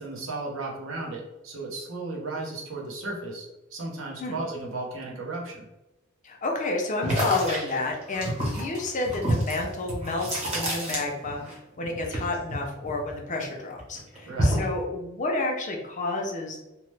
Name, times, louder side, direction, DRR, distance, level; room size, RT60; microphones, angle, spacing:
voice 1, 0.0-5.7 14.2-14.6, right 2 dB, 75° right, -2 dB, 0.8 m, -35 dB
voice 2, 6.2-16.7, left 2 dB, 40° left, 1 dB, 0.5 m, -30 dB
sound 1, 7.0-11.5 11.8-13.4 13.8-14.8, equal, 35° right, 0.9 m, -28 dB
2.9 x 2.0 x 3.2 m, 0.98 s
head